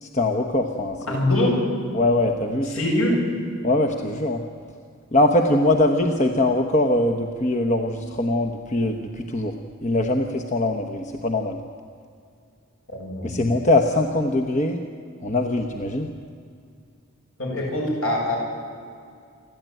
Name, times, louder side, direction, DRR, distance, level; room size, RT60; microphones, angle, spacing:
voice 1, 0.0-1.2 1.9-2.7 3.6-4.4 5.1-9.5 9.8-11.6 13.2-14.8 15.2-16.1, left 2 dB, 35° left, 3 dB, 1.0 m, -22 dB
voice 2, 1.1-1.6 2.7-3.2 12.9-13.5 17.4-18.4, left 1 dB, 70° left, -2 dB, 7.3 m, -23 dB
28.5 x 12.0 x 9.1 m, 2.3 s
head